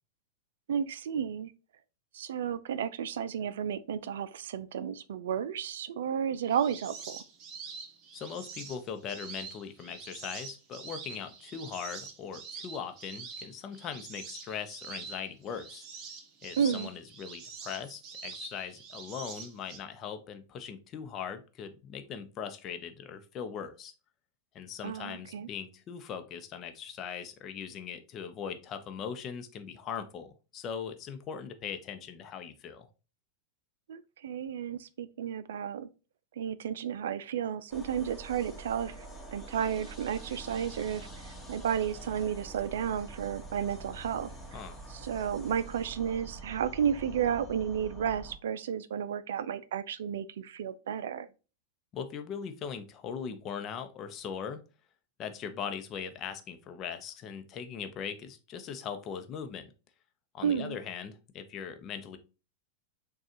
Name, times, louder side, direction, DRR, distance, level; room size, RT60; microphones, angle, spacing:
voice 1, 0.7-1.5 2.1-7.2 16.6-16.9 24.8-25.5 33.9-35.9 36.4-39.0 39.3-44.6 44.9-51.3 60.4-60.8, right 8 dB, 70° right, 0.3 m, -32 dB
sound 1, 6.4-19.8, right 5 dB, 40° right, 0.9 m, -45 dB
voice 2, 8.1-15.8 16.4-23.9 24.5-32.9 44.5-44.8 51.9-54.6 55.2-59.7 60.3-62.2, left 7 dB, 35° left, 0.7 m, -40 dB
sound 2, 37.7-48.4, right 2 dB, 5° left, 1.3 m, -46 dB
6.3 x 2.4 x 2.8 m
hypercardioid pair, 100°, 0 cm